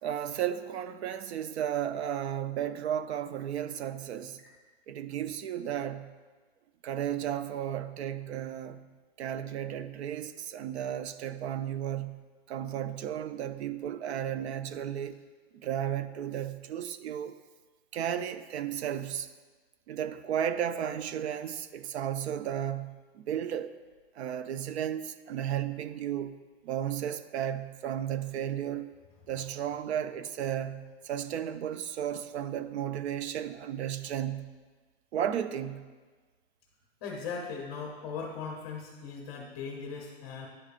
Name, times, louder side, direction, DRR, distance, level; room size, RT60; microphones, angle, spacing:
voice 1, 0.0-4.4 4.9-6.1 6.8-8.9 9.2-12.2 12.5-15.2 15.6-17.4 17.9-19.3 19.9-23.7 24.2-26.4 26.6-28.9 29.3-34.5 35.1-35.9, right 10 dB, 85° right, 0.6 m, -34 dB
voice 2, 37.0-40.5, left 5 dB, 25° left, 0.8 m, -38 dB
11.0 x 5.0 x 2.5 m
supercardioid pair, 175°, 32 cm